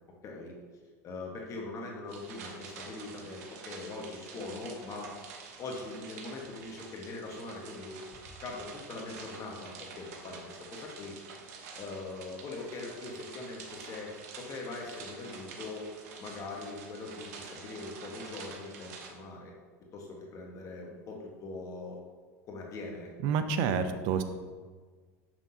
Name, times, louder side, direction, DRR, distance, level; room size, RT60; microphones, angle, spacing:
voice 1, 0.2-0.6 1.0-5.1 5.6-8.0 8.4-11.2 11.5-15.9 16.2-19.5 19.9-22.0 22.5-23.1, left 3 dB, 40° left, -1 dB, 1.2 m, -42 dB
sound 1, 2.1-19.1, right 5 dB, 75° right, 1.0 m, -48 dB
voice 2, 23.2-24.2, right 6 dB, 60° right, 9 dB, 0.6 m, -28 dB
7.1 x 5.9 x 2.7 m, 1.5 s
hypercardioid pair, 105°, 9 cm